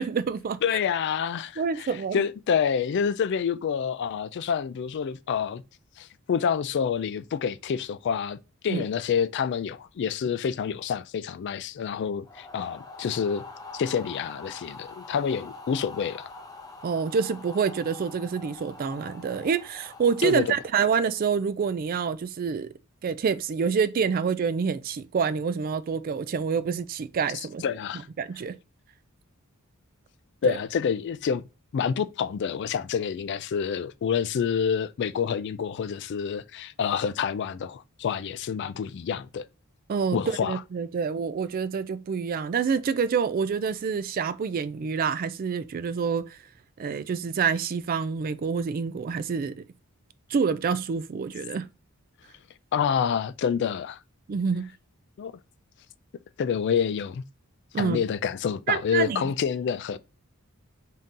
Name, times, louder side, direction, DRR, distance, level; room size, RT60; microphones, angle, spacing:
voice 1, 0.0-0.6 1.6-2.2 8.7-8.8 16.8-22.7 23.0-27.6 28.2-28.6 30.4-30.5 39.9-46.4 46.8-49.6 50.3-51.7 54.3-54.7 57.7-58.0 58.7-59.2, right 6 dB, 40° right, 0.3 m, -27 dB
voice 2, 0.6-5.6 6.0-8.4 8.6-13.4 13.7-16.3 20.2-20.5 27.6-28.1 30.4-31.4 31.7-39.4 40.1-40.6 52.7-54.0 55.2-55.3 56.4-57.2 57.8-60.0, left 7 dB, 50° left, 0.3 m, -28 dB
sound 1, 12.2-21.3, left 3 dB, 15° left, 0.7 m, -45 dB
3.7 x 2.7 x 3.7 m
head